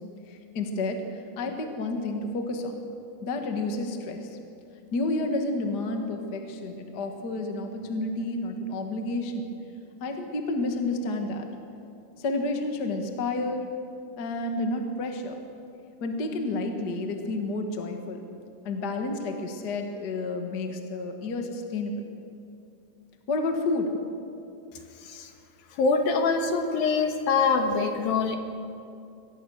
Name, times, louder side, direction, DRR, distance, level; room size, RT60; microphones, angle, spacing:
voice 1, 0.3-1.0 1.4-2.8 3.2-4.3 4.9-9.4 10.0-11.5 12.2-13.7 14.2-15.3 16.0-18.2 18.6-21.9 23.3-23.9, left 2 dB, 50° left, 4 dB, 1.2 m, -30 dB
voice 2, 25.8-28.4, left 4 dB, 65° left, 5 dB, 2.9 m, -24 dB
24.0 x 18.5 x 6.5 m, 2.6 s
omnidirectional pair, 4.8 m